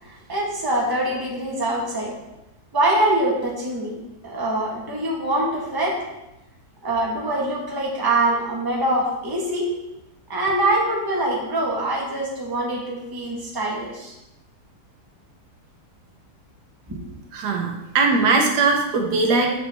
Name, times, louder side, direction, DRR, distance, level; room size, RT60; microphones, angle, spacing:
voice 1, 0.0-2.1 2.7-4.0 4.2-6.0 6.8-9.7 10.3-14.1 16.9-17.0, right 1 dB, 15° right, -3 dB, 1.1 m, -24 dB
voice 2, 17.3-19.5, right 3 dB, 80° right, 2 dB, 1.4 m, -20 dB
6.1 x 5.3 x 3.4 m, 0.94 s
omnidirectional pair, 1.8 m